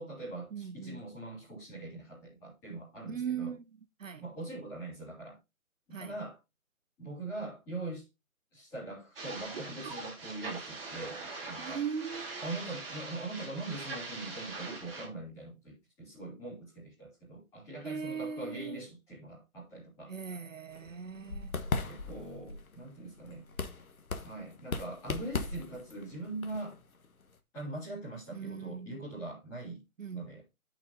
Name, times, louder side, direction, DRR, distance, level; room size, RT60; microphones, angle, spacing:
voice 1, 0.0-3.6 4.2-5.4 5.9-6.4 7.0-8.1 8.5-11.8 12.4-20.1 21.9-23.5 24.2-26.8 27.5-29.8 30.1-30.4, right 2 dB, 5° left, 3.2 m, -42 dB
voice 2, 0.5-1.0 3.1-3.6 4.0-4.2 5.9-6.1 11.6-12.4 17.8-18.8 20.1-21.5 28.3-28.9 30.0-30.3, right 7 dB, 65° right, 0.7 m, -39 dB
sound 1, 9.2-15.1, right 3 dB, 40° right, 2.9 m, -42 dB
sound 2, 20.7-27.4, left 4 dB, 75° left, 1.6 m, -38 dB
12.0 x 6.1 x 2.7 m
hypercardioid pair, 175°, 43 cm